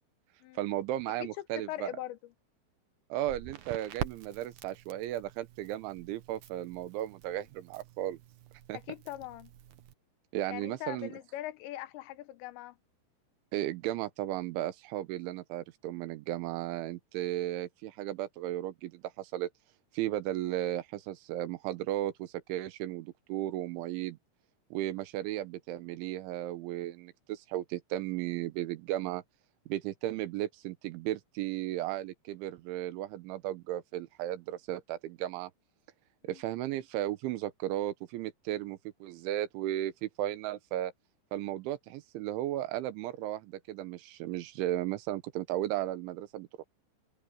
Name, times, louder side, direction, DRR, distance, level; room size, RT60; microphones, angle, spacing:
voice 1, 0.6-1.9 3.1-8.2 8.7-8.8 10.3-11.1 13.5-19.5 19.9-24.2 24.7-29.2 29.7-35.5 36.2-40.9 41.3-46.7, right 13 dB, 85° right, 3.5 m, -35 dB
voice 2, 1.2-2.3 8.7-9.5 10.5-12.8 36.2-36.4, left 15 dB, 80° left, 3.0 m, -41 dB
Crackle, 3.2-9.9, right 10 dB, 70° right, 1.9 m, -46 dB
omnidirectional pair, 5.3 m